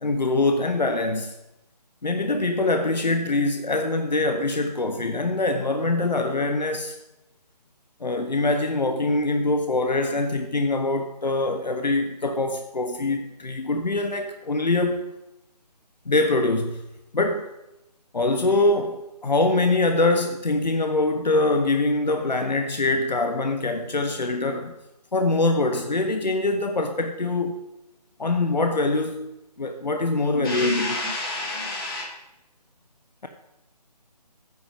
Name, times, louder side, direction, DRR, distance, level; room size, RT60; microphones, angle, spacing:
voice 1, 0.0-1.3 2.0-7.0 8.0-15.1 16.1-16.8 17.1-17.5 18.1-24.8 25.1-27.6 28.2-29.3 29.6-31.0, left 2 dB, 90° left, 0.9 m, -24 dB
voice 2, 30.3-32.0, left 2 dB, 35° left, 3.0 m, -28 dB
9.3 x 5.8 x 5.4 m
figure-of-eight pair, 155°, 21 cm